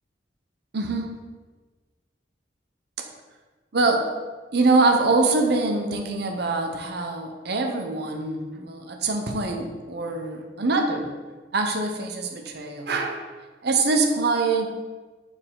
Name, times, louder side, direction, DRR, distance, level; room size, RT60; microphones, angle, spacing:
voice 1, 0.7-1.1 3.7-4.1 4.5-11.1 11.5-13.2 13.6-14.7, right 3 dB, 60° right, 2 dB, 0.8 m, -24 dB
6.7 x 4.4 x 3.8 m, 1.3 s
head